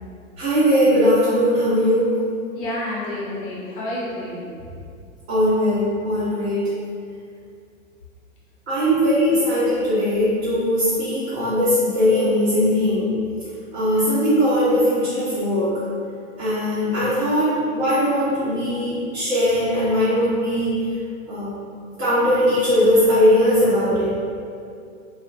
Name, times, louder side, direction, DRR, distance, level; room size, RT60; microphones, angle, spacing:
voice 1, 0.4-2.2 5.3-6.7 8.7-13.1 13.7-15.8 16.4-20.8 21.3-21.6 22.0-24.1, equal, 50° right, -13 dB, 0.8 m, -19 dB
voice 2, 2.5-4.8 14.7-14.9, left 1 dB, 40° left, -7 dB, 0.8 m, -30 dB
2.4 x 2.1 x 2.5 m, 2.4 s
figure-of-eight pair, 95°, 40 cm